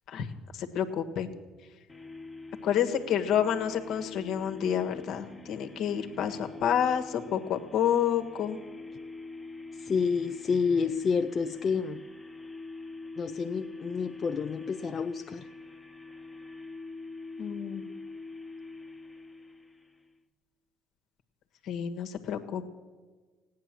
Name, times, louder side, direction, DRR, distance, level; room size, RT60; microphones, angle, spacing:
voice 1, 0.5-1.3 2.6-8.6 17.4-17.9 21.6-22.7, left 9 dB, 60° left, 6 dB, 1.5 m, -29 dB
sound 1, 1.9-20.2, left 3 dB, 15° left, 1.2 m, -45 dB
voice 2, 9.7-12.0 13.2-15.5, left 5 dB, 40° left, 7 dB, 0.6 m, -29 dB
16.5 x 9.7 x 7.6 m, 1.4 s
hypercardioid pair, 60°, 0 cm